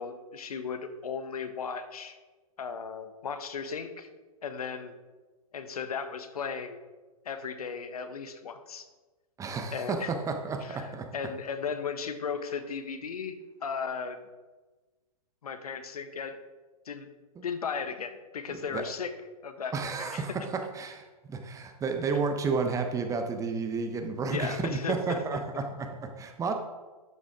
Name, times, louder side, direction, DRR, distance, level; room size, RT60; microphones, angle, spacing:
voice 1, 0.0-2.2 2.6-4.1 4.4-4.9 5.5-6.8 7.2-8.8 9.7-10.1 10.6-13.4 13.6-14.2 15.4-16.4 16.9-17.1 17.4-19.1 19.4-20.2 24.2-25.6, left 6 dB, 70° left, 9 dB, 1.0 m, -36 dB
voice 2, 9.4-11.1 17.4-17.5 18.5-18.8 19.7-26.5, right 4 dB, 15° right, 5 dB, 1.0 m, -32 dB
12.0 x 6.2 x 3.6 m, 1.2 s
figure-of-eight pair, 110°, 20 cm